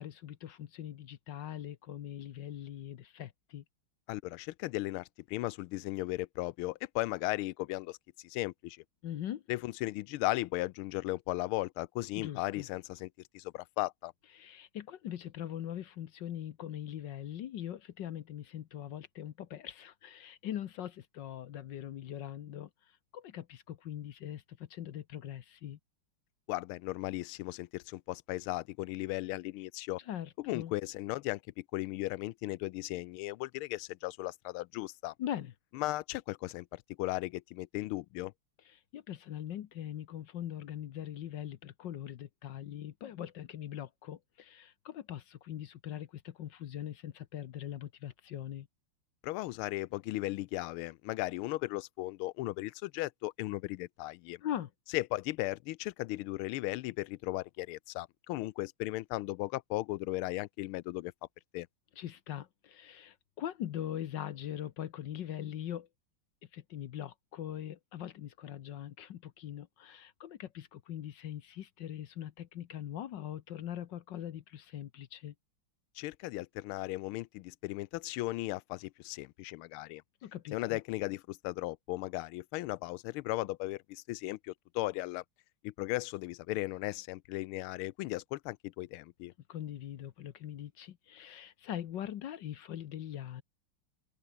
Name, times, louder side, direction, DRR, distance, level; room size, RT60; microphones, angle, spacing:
voice 1, 0.0-3.6 9.0-9.4 12.2-12.7 14.3-22.7 23.1-25.8 30.1-30.7 35.2-35.5 38.7-48.7 54.4-54.7 62.0-65.9 66.5-75.3 80.2-80.8 89.5-93.4, left 11 dB, 65° left, 1.4 m, -41 dB
voice 2, 4.1-8.8 9.5-13.1 13.3-14.1 26.5-30.0 30.4-35.1 35.7-38.3 49.2-54.4 54.9-61.1 61.5-61.7 76.0-80.0 80.5-85.2 85.6-89.3, left 18 dB, 80° left, 1.4 m, -36 dB
omnidirectional pair, 2.4 m